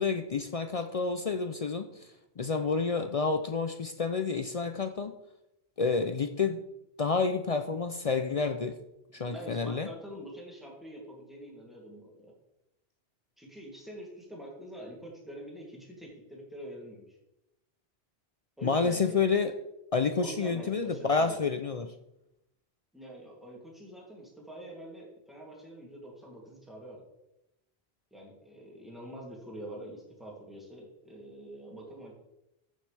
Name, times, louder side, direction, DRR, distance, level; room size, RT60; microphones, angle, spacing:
voice 1, 0.0-2.1 2.4-5.1 5.8-6.6 7.0-8.8 9.1-9.9 18.6-19.5 19.9-21.9, left 4 dB, 50° left, 8 dB, 0.4 m, -29 dB
voice 2, 9.1-12.3 13.4-17.2 18.6-19.2 20.2-21.4 22.9-27.0 28.1-32.1, right 1 dB, ahead, -3 dB, 2.6 m, -45 dB
14.5 x 6.4 x 3.3 m, 0.89 s
omnidirectional pair, 1.1 m